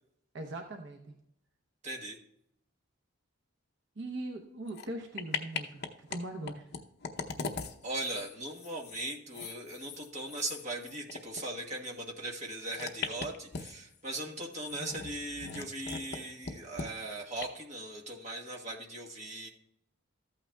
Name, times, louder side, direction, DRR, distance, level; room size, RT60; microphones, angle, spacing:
voice 1, 0.3-1.1 4.0-6.6, right 1 dB, 60° right, 3 dB, 0.8 m, -40 dB
voice 2, 1.8-2.2 7.8-19.5, right 1 dB, 35° right, -1 dB, 1.3 m, -39 dB
sound 1, 4.7-4.9 5.2-6.2 6.4-11.4 11.7-11.8 12.7-14.0 14.5-16.2 16.4-16.9 17.4-17.5, left 5 dB, 50° left, 0.7 m, -40 dB
14.0 x 8.8 x 2.3 m, 0.78 s
head